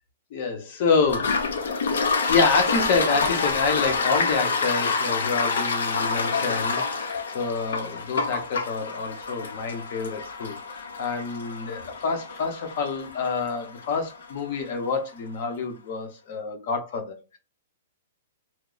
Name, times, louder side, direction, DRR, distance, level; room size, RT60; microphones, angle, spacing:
voice 1, 0.3-1.4 2.3-17.4, left 4 dB, 40° left, 0.7 m, -27 dB
Toilet flush, 1.0-14.4, left 4 dB, 90° left, 0.7 m, -27 dB
3.0 x 2.1 x 3.8 m
hypercardioid pair, 175°, 0 cm